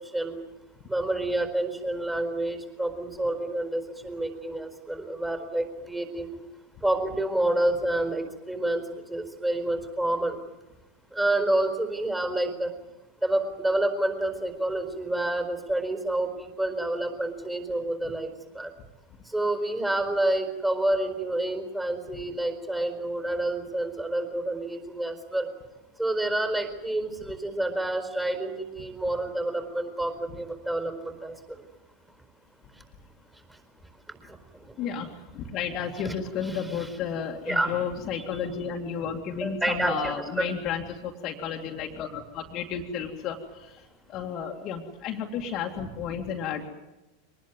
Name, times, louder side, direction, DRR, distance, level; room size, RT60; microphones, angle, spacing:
voice 1, 0.9-6.3 6.8-10.4 11.1-12.7 13.2-18.7 19.3-25.5 26.0-31.6 34.3-34.4 36.0-36.1 36.4-36.9 37.4-37.7 39.4-40.5, right 1 dB, 10° right, 7 dB, 4.5 m, -28 dB
voice 2, 34.8-43.7 44.1-46.7, left 7 dB, 40° left, 1 dB, 2.3 m, -32 dB
24.0 x 19.5 x 9.5 m, 1.0 s
figure-of-eight pair, 90°, 0 cm